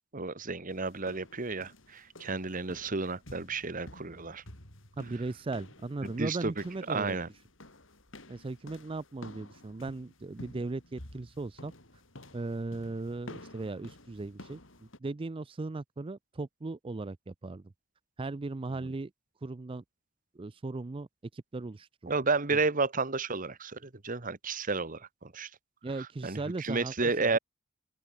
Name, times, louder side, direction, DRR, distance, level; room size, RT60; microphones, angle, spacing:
voice 1, 0.1-4.4 6.0-7.3 22.1-25.5 26.2-27.4, right 3 dB, 40° right, 1.4 m, -32 dB
sound 1, 0.7-15.0, left 1 dB, 70° left, 6.3 m, -52 dB
voice 2, 5.0-7.2 8.3-11.7 12.3-17.6 18.2-19.1 19.4-19.8 20.4-21.1 21.3-22.1 25.8-27.4, right 3 dB, 25° right, 0.4 m, -37 dB
open air
head